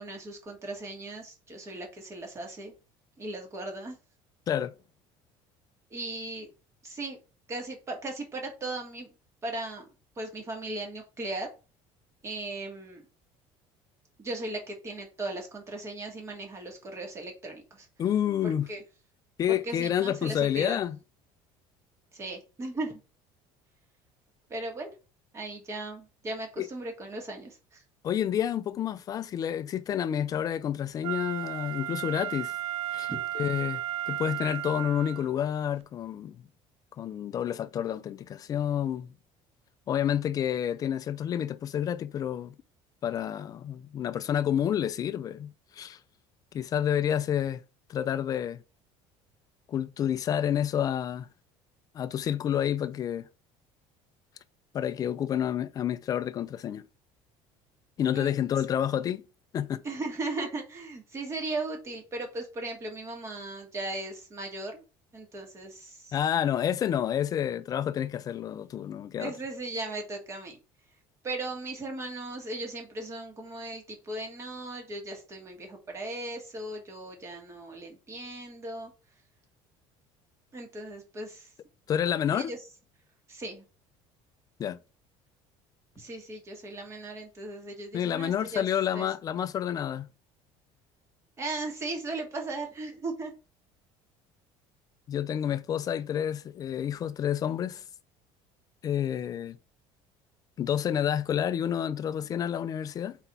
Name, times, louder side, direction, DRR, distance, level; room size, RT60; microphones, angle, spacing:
voice 1, 0.0-2.7 3.2-4.0 5.9-6.5 6.8-7.2 7.5-9.1 9.4-9.9 10.2-11.5 12.2-13.0 14.2-17.9 18.4-18.8 19.5-20.8 22.1-23.0 24.5-24.9 25.3-27.8 33.1-33.2 58.1-58.3 59.8-64.8 65.1-66.1 69.2-70.6 71.2-78.9 80.5-81.5 82.3-82.6 83.3-83.6 86.0-88.6 88.9-89.1 91.4-93.3, right 2 dB, 25° right, 1.7 m, -37 dB
voice 2, 18.0-18.7 19.4-21.0 26.6-26.7 28.0-32.5 32.9-33.8 34.1-36.4 37.0-39.1 39.9-42.5 43.0-46.0 46.5-47.6 47.9-48.6 49.7-51.3 51.9-53.3 54.7-56.8 58.0-59.2 59.5-59.8 66.1-69.3 81.9-82.5 84.6-84.8 87.9-90.1 95.1-97.8 98.8-99.6 100.6-103.2, left 9 dB, 30° left, 0.4 m, -29 dB
Wind instrument woodwind instrument, 31.0-35.3 35.8-35.9, right 12 dB, 55° right, 0.5 m, -34 dB
4.5 x 3.9 x 5.5 m
cardioid pair, 160°, 12 cm